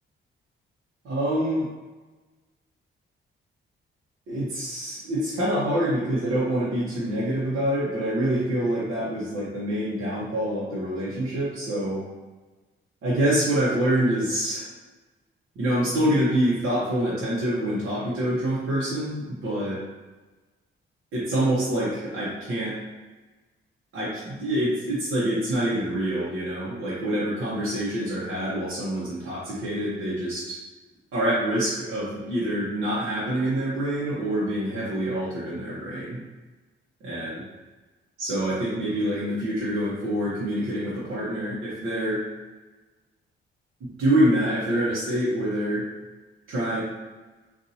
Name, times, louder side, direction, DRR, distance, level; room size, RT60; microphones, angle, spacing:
voice 1, 1.0-1.7 4.3-12.0 13.0-14.7 15.6-19.8 21.1-22.7 23.9-30.6 31.1-36.2 37.0-37.4 38.2-42.2 43.8-45.9 46.5-46.8, right 1 dB, 80° right, -9 dB, 1.0 m, -26 dB
4.1 x 2.6 x 2.7 m, 1.2 s
cardioid pair, 145°, 21 cm